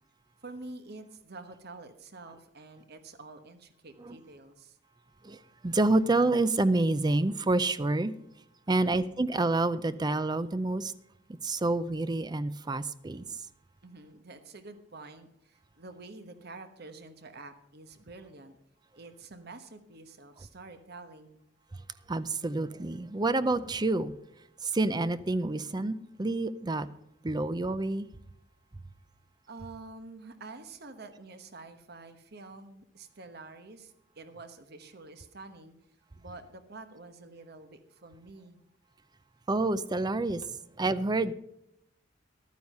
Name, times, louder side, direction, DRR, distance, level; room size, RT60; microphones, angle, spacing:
voice 1, 0.4-4.8 8.7-9.0 13.8-18.6 18.9-21.4 29.5-35.7 36.2-38.6, right 3 dB, 55° right, 1.1 m, -48 dB
voice 2, 5.6-8.1 8.7-10.9 11.4-13.2 22.1-24.1 24.6-26.9 27.2-28.1 39.5-40.5 40.8-41.3, right 2 dB, 20° right, 0.5 m, -28 dB
12.0 x 9.5 x 5.4 m
head